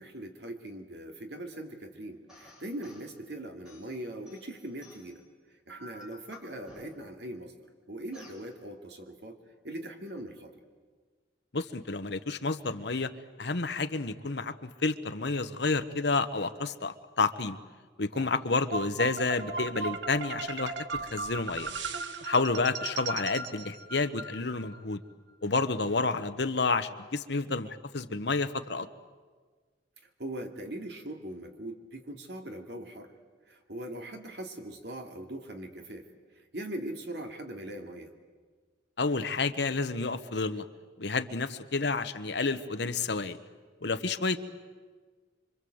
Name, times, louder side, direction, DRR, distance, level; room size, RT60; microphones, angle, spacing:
voice 1, 0.0-5.2 5.7-7.5 7.9-9.4 9.6-10.5 18.1-18.3 30.2-33.1 33.5-36.1 36.5-38.1, right 1 dB, 60° right, 4 dB, 2.8 m, -41 dB
sound 1, 2.3-3.1 3.6-5.2 5.7-7.2 8.1-8.4, equal, 5° right, 6.3 m, -52 dB
voice 2, 11.5-13.1 13.4-17.6 18.0-21.7 22.2-25.0 25.4-28.9 39.0-40.6 41.0-43.4 43.8-44.4, left 3 dB, 65° left, 9 dB, 1.2 m, -30 dB
sound 2, 18.7-24.8, right 4 dB, 80° right, 1.2 m, -37 dB
27.0 x 24.5 x 8.0 m, 1.5 s
head